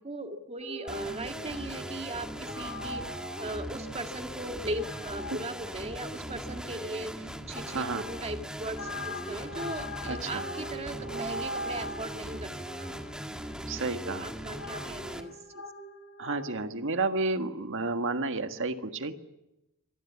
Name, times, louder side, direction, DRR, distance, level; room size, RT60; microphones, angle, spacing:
voice 1, 0.0-3.0 3.4-12.5 12.8-12.9 14.0-15.6, right 1 dB, 30° right, 6 dB, 2.0 m, -38 dB
sound 1, 0.6-16.6, left 1 dB, 70° left, 4.7 m, -42 dB
sound 2, 0.9-15.2, right 1 dB, 5° right, 1.8 m, -40 dB
voice 2, 7.7-8.1 10.0-10.5 13.7-14.3 16.2-19.1, right 3 dB, 60° right, 8 dB, 1.7 m, -31 dB
25.5 x 19.5 x 8.4 m, 0.92 s
head